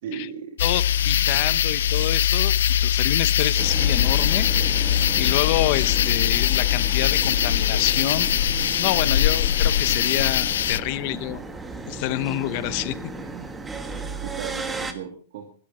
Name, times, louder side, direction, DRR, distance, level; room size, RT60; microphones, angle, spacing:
voice 1, 0.0-0.6 9.0-9.2 13.9-15.5, right 8 dB, 60° right, 2 dB, 2.9 m, -36 dB
sound 1, 0.6-10.8, left 10 dB, 90° left, 0.6 m, -21 dB
voice 2, 0.6-2.5 2.8-4.5 5.1-8.3 8.8-11.4 11.9-13.1, left 17 dB, 45° left, 16 dB, 0.9 m, -27 dB
sound 2, 3.6-14.9, right 3 dB, 10° right, 1.5 m, -35 dB
21.0 x 12.5 x 4.3 m, 0.40 s
supercardioid pair, 155°, 0 cm